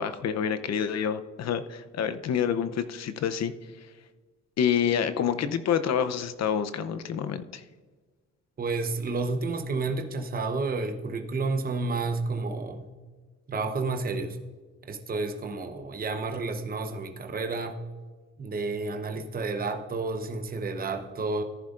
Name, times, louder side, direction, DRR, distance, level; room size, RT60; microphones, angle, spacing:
voice 1, 0.0-3.5 4.6-7.6, left 8 dB, 60° left, 11 dB, 0.7 m, -27 dB
voice 2, 8.6-12.9 13.5-14.4 14.9-17.8 18.4-21.4, right 3 dB, 30° right, 5 dB, 0.9 m, -30 dB
14.5 x 10.5 x 2.5 m, 1.4 s
cardioid pair, 90°, 30 cm